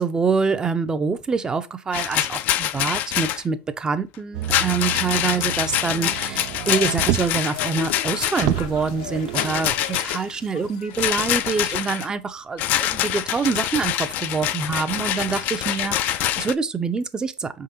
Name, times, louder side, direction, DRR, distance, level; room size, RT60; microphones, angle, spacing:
voice 1, 0.0-17.6, right 5 dB, 20° right, 0.6 m, -25 dB
Rattle, 1.9-3.4 4.4-8.6 9.3-10.2 10.9-12.1 12.6-16.5, left 13 dB, 55° left, 0.3 m, -25 dB
Motor vehicle (road), 4.3-7.5 8.0-8.1 8.4-9.8 10.6-10.7, right 14 dB, 70° right, 0.4 m, -29 dB
sound 1, 6.1-11.3, left 9 dB, 85° left, 0.7 m, -37 dB
4.7 x 3.8 x 2.7 m
supercardioid pair, 100°, 4 cm